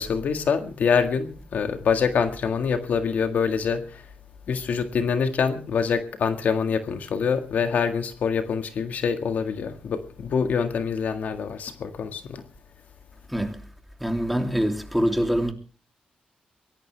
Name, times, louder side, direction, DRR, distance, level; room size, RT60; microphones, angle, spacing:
voice 1, 0.0-4.1 4.5-12.4, left 6 dB, 70° left, 1.8 m, -25 dB
voice 2, 13.3-13.7 14.0-15.5, equal, ahead, 3.0 m, -24 dB
22.5 x 17.5 x 3.4 m
cardioid pair, 85°, 3 cm